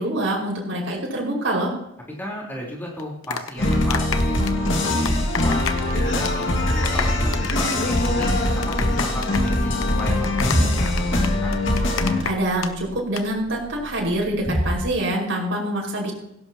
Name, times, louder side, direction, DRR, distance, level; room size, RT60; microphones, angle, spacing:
voice 1, 0.0-1.7 12.2-16.1, right 1 dB, 65° right, -2 dB, 5.3 m, -25 dB
voice 2, 2.1-6.6 6.9-11.1 11.4-11.6, left 1 dB, 10° left, -3 dB, 3.9 m, -35 dB
sound 1, 3.0-5.9 6.2-6.4 6.7-12.7 13.0-13.2, left 6 dB, 85° left, 1.0 m, -30 dB
sound 2, 3.6-12.2, left 1 dB, 65° left, 2.1 m, -22 dB
sound 3, 11.6-14.9, equal, 45° left, 2.8 m, -30 dB
17.0 x 16.5 x 3.0 m, 0.82 s
head